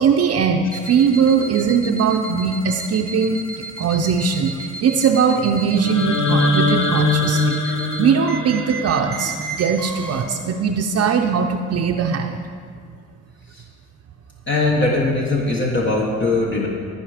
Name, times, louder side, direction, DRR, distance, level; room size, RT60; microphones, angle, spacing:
voice 1, 0.0-3.4 3.8-12.4, right 6 dB, 55° right, 3 dB, 0.7 m, -20 dB
sound 1, 0.6-10.2, right 3 dB, 5° left, 1.8 m, -34 dB
sound 2, 5.8-9.8, left 2 dB, 85° left, 1.6 m, -22 dB
voice 2, 14.5-16.7, left 2 dB, 40° left, -2 dB, 1.4 m, -20 dB
16.5 x 5.6 x 5.0 m, 2.1 s
cardioid pair, 90°, 30 cm